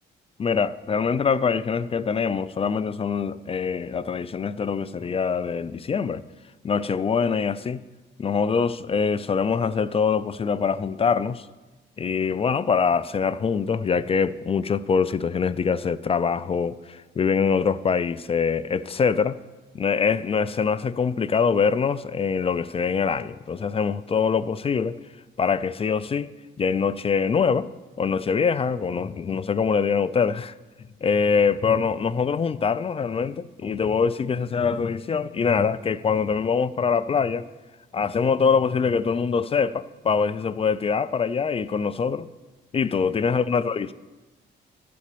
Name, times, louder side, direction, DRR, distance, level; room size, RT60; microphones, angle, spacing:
voice 1, 0.4-6.2 6.6-7.8 8.2-11.4 12.0-19.4 19.7-25.0 25.4-26.3 26.6-27.7 28.0-30.5 31.0-37.4 37.9-42.3 42.7-43.9, left 6 dB, 30° left, 0.4 m, -24 dB
12.5 x 4.3 x 8.4 m
cardioid pair, 90°, 20 cm